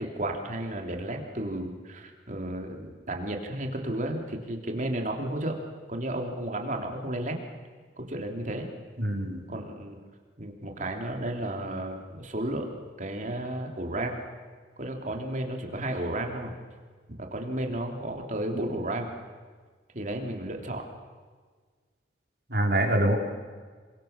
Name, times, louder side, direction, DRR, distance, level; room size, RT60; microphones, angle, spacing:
voice 1, 0.0-5.6 5.9-7.4 8.0-8.7 9.5-10.0 10.4-12.7 13.0-14.2 14.8-16.5 17.1-19.1 19.9-20.8, right 1 dB, 45° right, 2 dB, 3.3 m, -33 dB
voice 2, 9.0-9.4 22.5-23.1, right 1 dB, 65° right, 1 dB, 4.6 m, -24 dB
28.5 x 23.5 x 6.8 m, 1.5 s
head